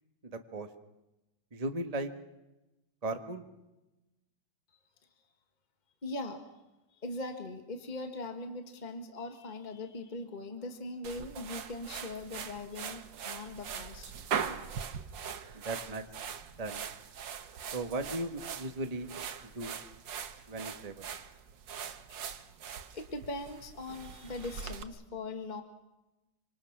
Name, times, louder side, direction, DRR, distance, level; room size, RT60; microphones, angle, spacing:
voice 1, 0.2-0.7 1.5-2.1 3.0-3.4 15.5-16.0 16.6-16.8 17.7-19.1 19.5-19.8 20.5-21.0, right 2 dB, 20° right, 6 dB, 1.4 m, -36 dB
voice 2, 6.0-6.4 6.9-14.1 14.4-14.9 22.1-22.3 22.9-25.6, left 2 dB, 25° left, 5 dB, 1.8 m, -41 dB
sound 1, 11.0-24.8, right 7 dB, 70° right, 1.9 m, -41 dB
27.5 x 26.0 x 6.1 m, 0.99 s
omnidirectional pair, 2.1 m